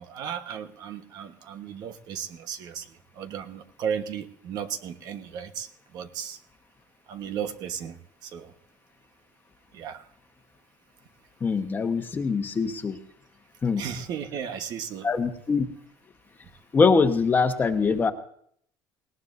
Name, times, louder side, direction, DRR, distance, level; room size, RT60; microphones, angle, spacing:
voice 1, 0.0-2.9 3.2-5.7 5.9-6.4 7.1-8.0 8.2-8.5 9.7-10.0 13.8-15.1, right 8 dB, 60° right, 8 dB, 1.3 m, -35 dB
voice 2, 11.4-13.0 13.6-13.8 15.0-15.7 16.7-18.1, left 4 dB, 25° left, 6 dB, 1.2 m, -23 dB
19.5 x 18.0 x 2.7 m, 0.64 s
cardioid pair, 135°, 8 cm